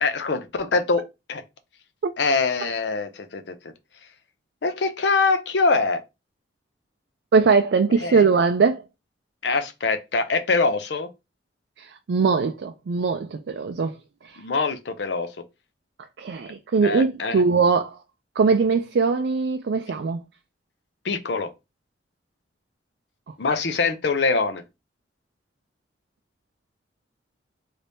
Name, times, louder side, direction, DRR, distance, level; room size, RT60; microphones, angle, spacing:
voice 1, 0.0-1.0 1.3-1.4 2.2-3.4 4.6-6.0 8.0-8.2 9.4-11.1 14.4-15.3 16.8-17.4 21.0-21.5 23.4-24.6, left 4 dB, 70° left, 0.6 m, -23 dB
voice 2, 7.3-8.8 11.8-14.0 14.2-14.4 16.2-18.0 18.4-20.2, right 4 dB, 70° right, 0.4 m, -21 dB
3.2 x 2.7 x 3.3 m
head